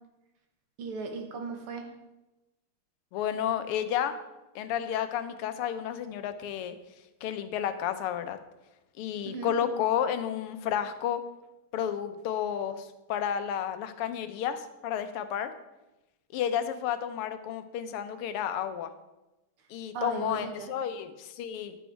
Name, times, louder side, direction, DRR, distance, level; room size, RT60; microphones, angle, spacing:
voice 1, 0.8-1.9 9.2-9.5 19.9-20.7, right 4 dB, 85° right, 4 dB, 2.1 m, -37 dB
voice 2, 3.1-4.2 4.5-6.8 7.2-8.4 9.0-11.2 11.7-15.5 16.3-18.9 19.7-21.8, left 9 dB, 90° left, 10 dB, 1.6 m, -31 dB
10.0 x 6.3 x 4.6 m, 1.0 s
omnidirectional pair, 2.4 m